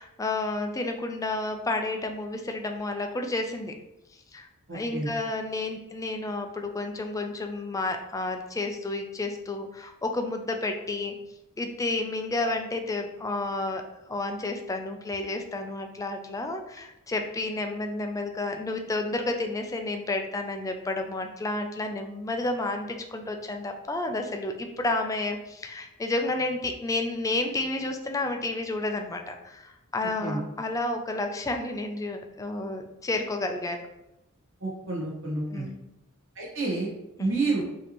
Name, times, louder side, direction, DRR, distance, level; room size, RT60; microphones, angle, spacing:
voice 1, 0.0-3.7 4.3-4.5 4.7-11.1 11.6-13.8 14.1-33.8 35.5-35.8 37.2-37.3, left 2 dB, 15° left, 4 dB, 0.4 m, -31 dB
voice 2, 4.7-5.1 30.2-30.4 34.6-35.7 36.3-36.9 37.2-37.6, right 3 dB, 65° right, -4 dB, 1.0 m, -29 dB
5.1 x 2.8 x 3.0 m, 0.89 s
head